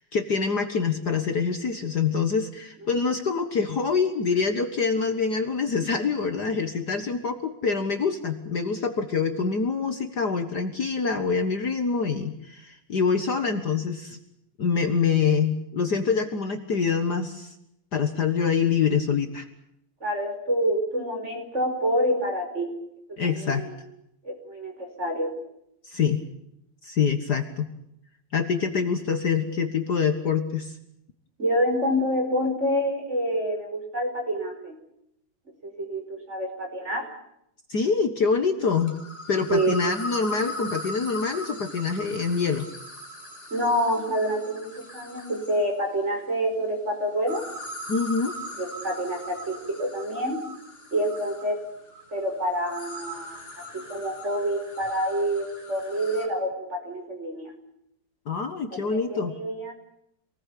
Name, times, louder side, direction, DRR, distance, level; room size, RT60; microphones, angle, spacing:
voice 1, 0.0-14.2 14.6-17.5 17.9-19.5 23.2-23.6 25.8-26.2 26.8-27.7 28.3-30.7 37.7-39.0 39.3-42.7 47.9-48.3 58.3-59.4, left 5 dB, 50° left, 6 dB, 2.0 m, -25 dB
voice 2, 20.0-22.7 23.2-23.8 24.2-25.3 31.4-34.8 35.6-37.1 39.5-39.8 43.5-47.4 48.6-50.4 50.9-51.6 52.1-53.4 53.7-57.5 58.8-59.7, equal, 30° right, 3 dB, 5.6 m, -27 dB
sound 1, 38.6-45.7 47.1-56.3, equal, 25° left, 5.0 m, -40 dB
27.5 x 20.0 x 8.5 m, 0.78 s
omnidirectional pair, 2.4 m